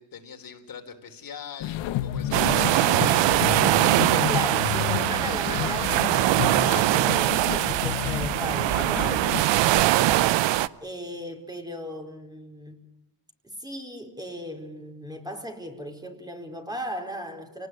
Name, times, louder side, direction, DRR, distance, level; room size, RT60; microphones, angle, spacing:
voice 1, 0.0-3.8, left 7 dB, 50° left, 3.8 m, -42 dB
sound 1, 1.6-9.4, left 12 dB, 85° left, 1.6 m, -31 dB
sound 2, 2.3-10.7, right 15 dB, 70° right, 0.9 m, -22 dB
voice 2, 4.3-10.2 10.8-12.8 13.4-17.7, equal, 10° right, 4.3 m, -37 dB
28.5 x 19.0 x 9.5 m
cardioid pair, 105°, 44 cm